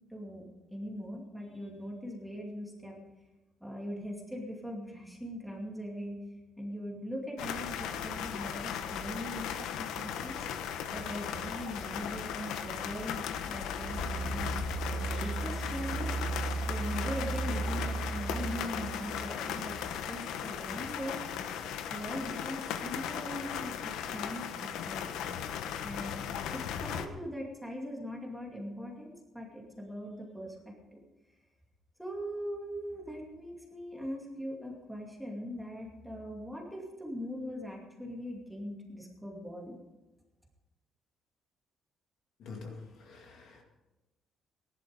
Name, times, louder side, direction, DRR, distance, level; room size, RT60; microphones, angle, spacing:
voice 1, 0.1-3.0 3.6-6.2 6.6-10.4 10.9-16.1 16.7-19.8 20.1-21.2 21.9-25.1 25.8-31.0 32.0-39.8, equal, ahead, -2 dB, 2.4 m, -41 dB
sound 1, 7.4-27.1, left 8 dB, 85° left, 1.1 m, -37 dB
sound 2, 10.9-20.1, right 4 dB, 40° right, 3.9 m, -38 dB
voice 2, 42.4-43.6, left 4 dB, 50° left, 1 dB, 2.2 m, -46 dB
18.0 x 11.5 x 5.2 m, 1.1 s
cardioid pair, 175°, 0 cm